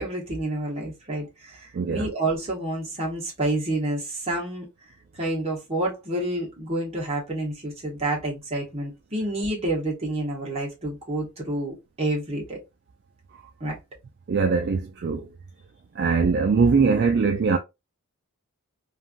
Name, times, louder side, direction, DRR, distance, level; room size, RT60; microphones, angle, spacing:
voice 1, 0.0-4.7 5.2-12.6 13.6-13.8, right 1 dB, 25° right, 1.2 m, -29 dB
voice 2, 1.7-2.1 14.3-15.3 16.0-17.6, right 5 dB, 50° right, 0.4 m, -21 dB
3.2 x 2.5 x 2.2 m
head